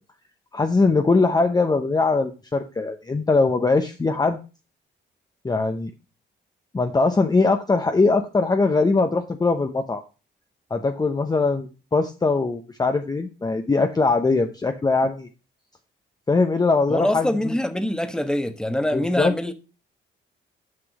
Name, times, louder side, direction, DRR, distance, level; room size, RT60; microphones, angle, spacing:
voice 1, 0.5-4.4 5.4-5.9 6.7-10.0 10.7-15.3 16.3-17.6 18.9-19.3, left 3 dB, 20° left, 0.8 m, -21 dB
voice 2, 16.9-19.5, left 1 dB, 5° left, 1.1 m, -24 dB
6.4 x 6.0 x 5.9 m
cardioid pair, 90°, 20 cm